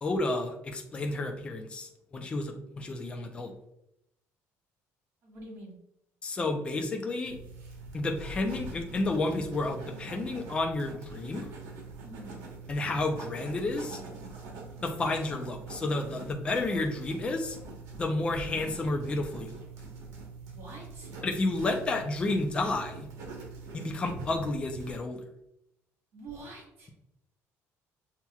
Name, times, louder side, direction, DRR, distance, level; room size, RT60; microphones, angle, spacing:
voice 1, 0.0-3.5 6.2-7.4 7.9-11.5 12.7-14.0 14.8-17.6 18.0-19.6 21.2-23.1 23.7-25.2, left 2 dB, 20° left, 3 dB, 0.5 m, -31 dB
voice 2, 5.2-5.7 12.0-12.4 20.5-21.1 26.1-26.9, right 2 dB, 45° right, -4 dB, 1.6 m, -46 dB
sound 1, 7.2-25.0, right 3 dB, 75° right, 1.2 m, -44 dB
6.9 x 2.9 x 2.3 m, 0.81 s
cardioid pair, 175°, 6 cm